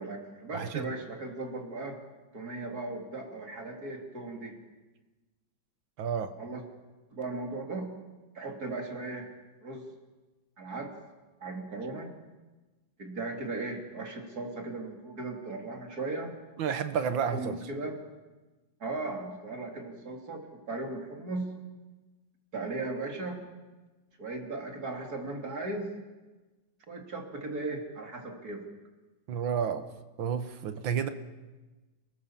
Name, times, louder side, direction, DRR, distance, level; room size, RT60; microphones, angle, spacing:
voice 1, 0.0-2.0 2.3-4.6 6.4-6.6 7.1-7.9 8.4-9.3 9.6-9.9 10.6-10.9 11.4-12.1 13.0-16.4 17.1-18.0 18.8-21.5 22.5-23.4 24.2-25.9 26.9-28.6, right 2 dB, 50° right, 2 dB, 3.8 m, -37 dB
voice 2, 0.5-0.9 6.0-6.3 16.6-17.6 29.3-29.8 30.2-31.1, right 7 dB, 80° right, 9 dB, 1.9 m, -30 dB
29.5 x 18.5 x 7.5 m, 1.2 s
omnidirectional pair, 2.1 m